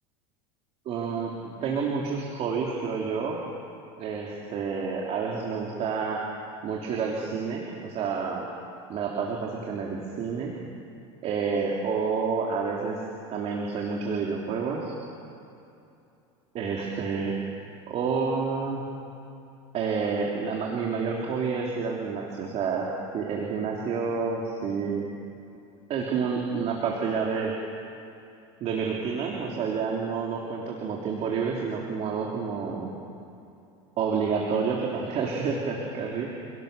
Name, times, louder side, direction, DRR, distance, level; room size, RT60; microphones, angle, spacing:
voice 1, 0.9-3.4 4.0-6.2 6.6-8.5 8.9-10.6 11.2-13.0 13.3-14.9 16.5-17.4 17.9-18.8 19.7-22.9 23.1-25.1 25.9-27.5 28.6-32.9 34.0-36.3, right 5 dB, 45° right, -2 dB, 3.4 m, -29 dB
29.5 x 17.5 x 6.9 m, 2.6 s
supercardioid pair, 120°, 15 cm